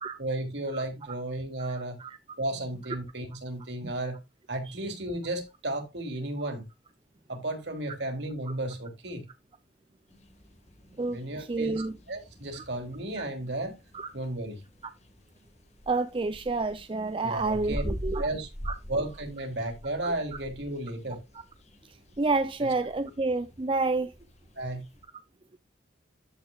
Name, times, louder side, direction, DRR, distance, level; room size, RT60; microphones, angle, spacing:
voice 1, 0.2-2.0 2.4-4.2 4.5-6.7 7.3-9.3 11.1-11.8 12.1-13.8 14.1-14.6 17.2-17.8 18.2-18.5 18.9-21.2 24.6-24.9, right 1 dB, 65° right, 3.2 m, -33 dB
voice 2, 1.6-2.2 3.8-3.9 11.0-11.2 11.5-12.0 13.9-14.1 15.9-18.3 18.6-18.7 20.0-20.1 22.2-24.1, right 3 dB, 30° right, 0.5 m, -29 dB
sound 1, 10.1-25.0, equal, 40° left, 1.8 m, -44 dB
13.5 x 5.8 x 2.4 m
head